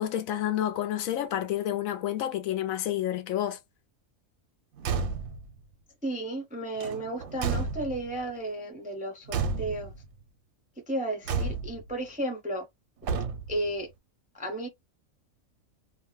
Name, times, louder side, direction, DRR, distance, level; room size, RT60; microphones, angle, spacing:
voice 1, 0.0-3.6, left 11 dB, 75° left, 1.0 m, -29 dB
Car / Truck / Slam, 4.8-5.5 6.8-8.2 9.3-10.1 11.3-11.9 13.0-13.7, right 5 dB, 85° right, 1.0 m, -31 dB
voice 2, 6.0-9.9 10.9-12.6 13.5-13.9 14.3-14.7, right 1 dB, 10° right, 0.4 m, -33 dB
2.6 x 2.1 x 3.1 m
omnidirectional pair, 1.5 m